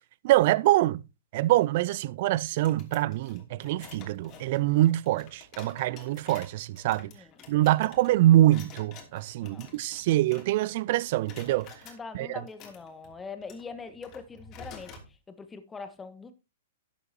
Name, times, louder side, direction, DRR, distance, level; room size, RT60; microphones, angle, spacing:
voice 1, 0.2-1.0 1.3-7.1 7.5-11.7 12.1-12.3, right 15 dB, 45° right, 0.6 m, -24 dB
sound 1, 2.5-10.7 11.0-12.0 12.5-15.1, left 5 dB, 30° left, 2.9 m, -50 dB
voice 2, 11.8-16.3, left 5 dB, 15° left, 1.5 m, -43 dB
12.5 x 9.6 x 2.9 m
figure-of-eight pair, 110°, 0 cm